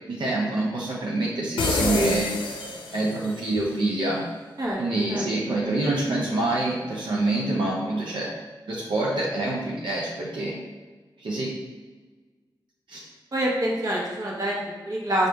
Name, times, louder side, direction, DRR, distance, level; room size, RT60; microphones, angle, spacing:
voice 1, 0.1-2.3 2.9-4.3 4.8-8.3 8.7-10.6 11.2-11.5 12.9-13.1, right 2 dB, 80° right, -4 dB, 0.7 m, -26 dB
sound 1, 1.6-3.4, left 3 dB, 90° left, 0.5 m, -26 dB
voice 2, 13.3-15.3, right 1 dB, 45° right, -4 dB, 1.2 m, -26 dB
5.1 x 2.6 x 3.3 m, 1.3 s
cardioid pair, 65°, 8 cm